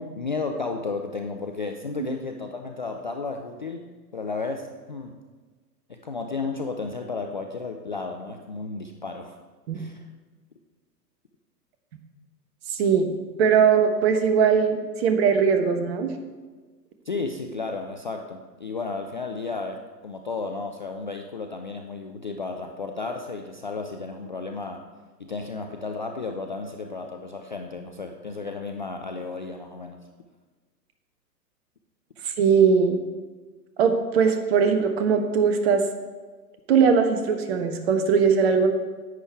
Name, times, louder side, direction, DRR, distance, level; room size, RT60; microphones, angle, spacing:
voice 1, 0.0-3.9 4.1-5.2 5.9-9.4 9.7-10.0 17.1-24.8 25.2-30.0, left 4 dB, 30° left, 4 dB, 0.4 m, -33 dB
voice 2, 12.7-13.1 13.4-16.1 32.2-33.0 33.8-35.8 36.7-38.7, right 6 dB, 40° right, 7 dB, 1.2 m, -20 dB
10.5 x 8.5 x 4.6 m, 1.4 s
figure-of-eight pair, 115°, 50 cm